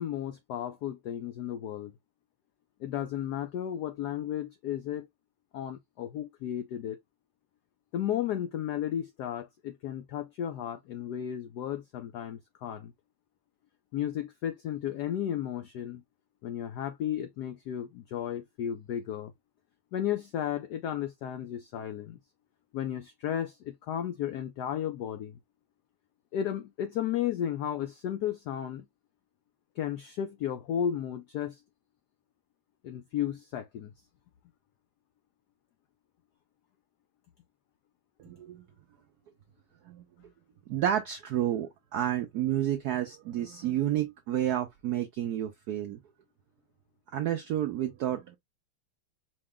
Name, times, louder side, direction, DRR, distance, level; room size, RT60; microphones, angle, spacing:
voice 1, 0.0-1.9 2.8-5.1 5.5-7.0 7.9-12.9 13.9-16.0 16.4-19.3 19.9-22.2 22.7-25.4 26.3-28.8 29.8-31.6 32.8-33.9, left 10 dB, 85° left, 0.8 m, -34 dB
voice 2, 38.2-38.6 39.9-40.3 40.7-46.0 47.1-48.4, right 11 dB, 85° right, 0.8 m, -30 dB
5.0 x 2.1 x 3.5 m
omnidirectional pair, 2.3 m